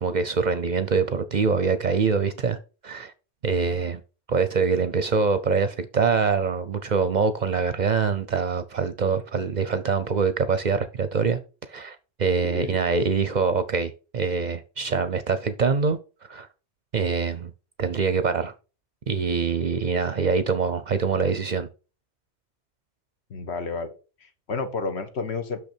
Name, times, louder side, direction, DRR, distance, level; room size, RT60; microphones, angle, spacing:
voice 1, 0.0-2.6 2.8-3.1 3.4-4.0 4.3-11.4 11.7-16.0 16.3-16.5 16.9-17.5 17.8-18.5 19.1-21.7, right 5 dB, 50° right, 0.6 m, -24 dB
voice 2, 23.3-23.9 24.5-25.6, left 4 dB, 70° left, 1.3 m, -30 dB
6.3 x 5.5 x 4.4 m
omnidirectional pair, 1.1 m